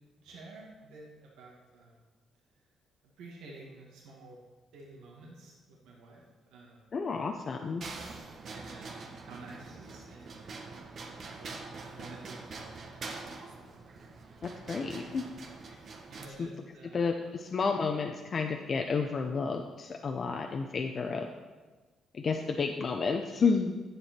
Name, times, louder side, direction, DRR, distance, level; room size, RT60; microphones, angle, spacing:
voice 1, 0.2-2.0 2.5-2.6 3.2-4.4 4.7-7.0 8.4-10.5 11.2-11.6 11.8-13.1 13.4-13.8 14.2-14.6 16.1-17.1, right 2 dB, 90° right, -2 dB, 1.8 m, -51 dB
voice 2, 6.9-7.8 14.4-15.2 15.7-15.8 16.4-16.5 16.9-17.1 17.5-21.3 22.1-23.8, left 5 dB, 45° left, 3 dB, 0.7 m, -31 dB
sound 1, 7.8-16.3, right 3 dB, 55° right, 1.3 m, -44 dB
10.0 x 7.7 x 4.4 m, 1.3 s
cardioid pair, 90°, 0 cm